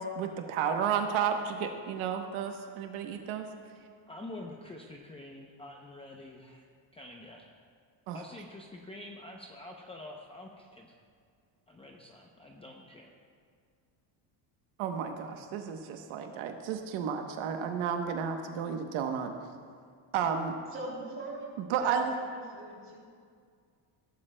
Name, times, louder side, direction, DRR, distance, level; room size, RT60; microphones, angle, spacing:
voice 1, 0.0-3.5 8.1-8.2 14.8-19.3 20.1-20.6 21.7-22.1, right 7 dB, 80° right, 4 dB, 1.1 m, -32 dB
voice 2, 4.1-6.6 6.9-7.5 8.1-10.9 11.7-13.1, left 1 dB, 10° left, 0 dB, 0.6 m, -47 dB
voice 3, 20.7-23.0, right 2 dB, 25° right, -4 dB, 3.1 m, -41 dB
17.0 x 12.0 x 2.2 m, 2.1 s
cardioid pair, 150°, 47 cm